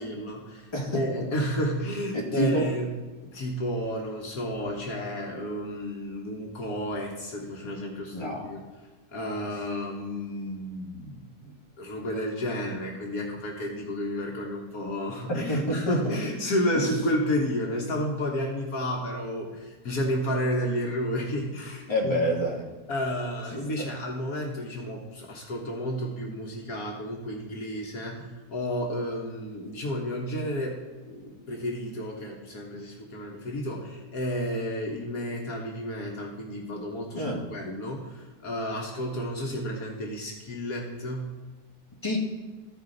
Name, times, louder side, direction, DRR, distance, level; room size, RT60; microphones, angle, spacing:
voice 1, 0.0-2.9 3.2-8.6 9.1-22.3 22.9-41.4, equal, 65° left, -1 dB, 1.6 m, -31 dB
voice 2, 2.1-2.7 8.1-8.5 15.5-16.2 21.9-22.7 23.5-23.9 37.1-37.4 42.0-42.2, equal, 15° left, -3 dB, 1.8 m, -27 dB
14.5 x 4.9 x 3.9 m, 1.3 s
omnidirectional pair, 1.7 m